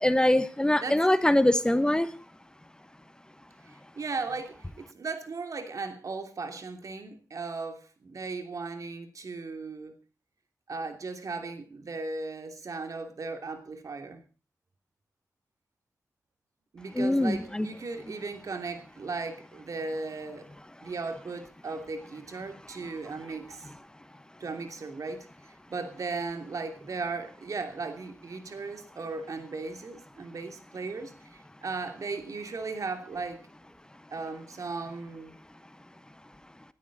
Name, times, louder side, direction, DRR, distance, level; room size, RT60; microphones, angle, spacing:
voice 1, 0.0-2.1 16.9-17.7, left 1 dB, 15° left, 1.1 m, -23 dB
voice 2, 3.7-10.0 10.7-14.2 16.7-20.5 20.8-23.7 24.4-33.5 34.1-35.4, right 4 dB, 65° right, 3.0 m, -37 dB
19.5 x 13.0 x 4.1 m
cardioid pair, 70°, 6 cm